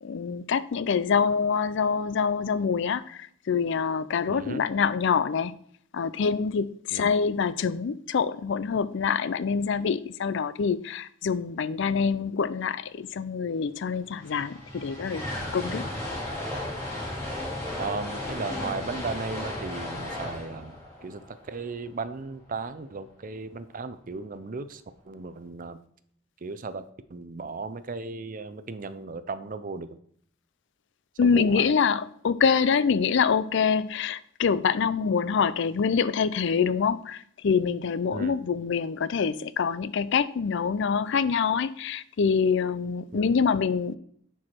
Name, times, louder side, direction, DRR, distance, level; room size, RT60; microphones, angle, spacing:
voice 1, 0.0-5.5 5.9-15.2 15.5-15.8 31.2-44.0, left 6 dB, 65° left, 0.4 m, -25 dB
voice 2, 4.3-4.6 6.9-7.1 15.7-16.0 17.8-25.8 26.4-30.0 31.2-31.7 38.1-38.4 43.1-43.4, right 3 dB, 45° right, 0.6 m, -36 dB
sound 1, 13.7-13.8 14.0-22.2, left 1 dB, 15° left, 2.9 m, -35 dB
10.5 x 4.7 x 4.4 m
head